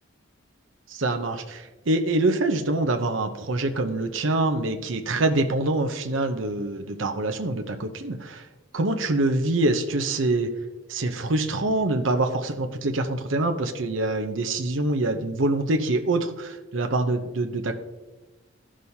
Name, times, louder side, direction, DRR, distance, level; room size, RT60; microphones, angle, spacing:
voice 1, 0.9-8.4 8.7-10.5 10.9-17.7, right 2 dB, 90° right, 5 dB, 0.8 m, -25 dB
15.0 x 6.2 x 2.8 m, 1.1 s
head